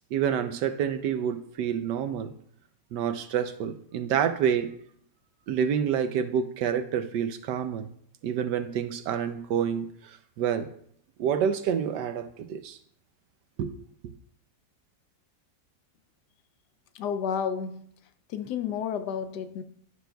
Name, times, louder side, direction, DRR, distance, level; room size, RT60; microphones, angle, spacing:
voice 1, 0.1-2.3 2.9-4.7 5.5-7.9 8.2-10.7 11.2-12.8 13.6-13.8, right 8 dB, 80° right, 9 dB, 1.3 m, -28 dB
voice 2, 16.9-17.9 18.3-19.6, left 7 dB, 75° left, 10 dB, 1.1 m, -31 dB
11.5 x 6.0 x 2.3 m, 0.68 s
omnidirectional pair, 1.8 m